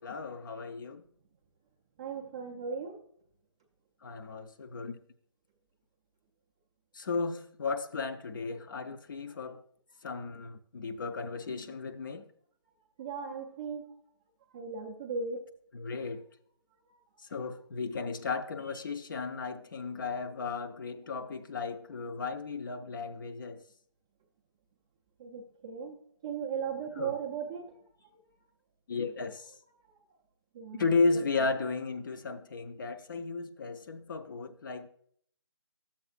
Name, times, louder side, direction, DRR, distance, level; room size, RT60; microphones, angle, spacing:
voice 1, 0.0-1.0 4.0-5.0 6.9-9.6 10.0-12.2 15.7-16.2 17.3-23.6 27.0-27.2 28.9-29.5 30.8-34.9, left 4 dB, 45° left, 0.6 m, -34 dB
voice 2, 2.0-3.0 13.0-13.9 14.5-15.4 16.9-17.0 25.2-26.0 26.2-27.8 30.5-30.9, right 6 dB, 10° right, 0.3 m, -37 dB
12.0 x 7.2 x 2.4 m
figure-of-eight pair, 150°, 15 cm